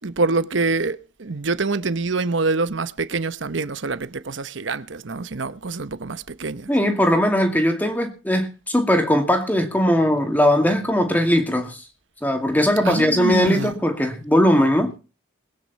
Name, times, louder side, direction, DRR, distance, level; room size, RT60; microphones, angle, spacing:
voice 1, 0.0-6.7 12.8-13.7, right 3 dB, 75° right, 0.9 m, -25 dB
voice 2, 6.7-11.8 12.2-14.9, equal, 10° left, 2.3 m, -19 dB
21.5 x 9.7 x 4.2 m
head